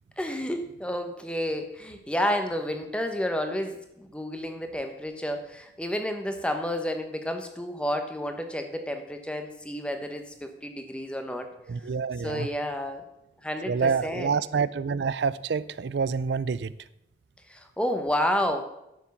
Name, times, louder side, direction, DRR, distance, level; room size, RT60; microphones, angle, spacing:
voice 1, 0.2-11.5 12.2-13.0 13.4-14.3 17.5-18.6, equal, 5° left, 1.1 m, -30 dB
voice 2, 11.7-12.5 13.7-16.7, right 5 dB, 80° right, 0.4 m, -27 dB
11.0 x 7.3 x 7.0 m
head